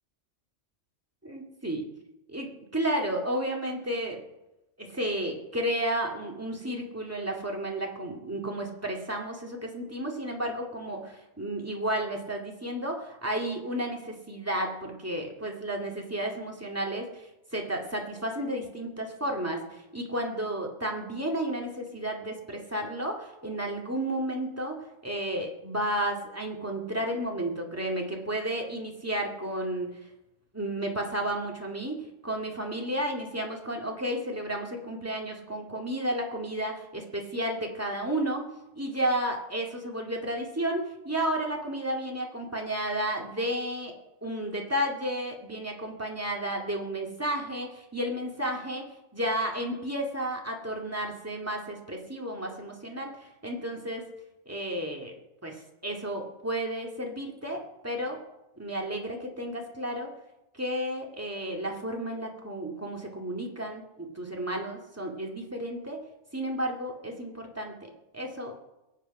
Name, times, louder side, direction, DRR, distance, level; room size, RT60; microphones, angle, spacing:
voice 1, 1.2-1.8 2.3-4.2 4.8-17.3 17.5-29.9 30.5-38.4 38.8-43.9 44.2-48.8 49.1-54.1 54.5-55.1 55.4-55.6 55.8-58.2 58.6-60.1 60.5-66.0 66.3-68.7, right 1 dB, 10° right, 0 dB, 2.3 m, -32 dB
22.0 x 8.5 x 5.5 m, 0.95 s
omnidirectional pair, 1.2 m